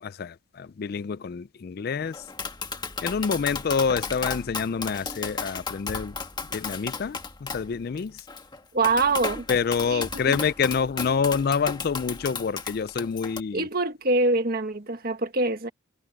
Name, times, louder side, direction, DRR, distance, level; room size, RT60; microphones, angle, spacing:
voice 1, 0.0-2.2 3.0-6.2 6.5-8.2 9.5-13.7, left 6 dB, 50° left, 0.4 m, -27 dB
Tap, 2.1-13.4, left 4 dB, 20° left, 1.5 m, -34 dB
voice 2, 8.7-9.4 9.9-10.4 13.5-15.7, right 3 dB, 45° right, 1.7 m, -24 dB
head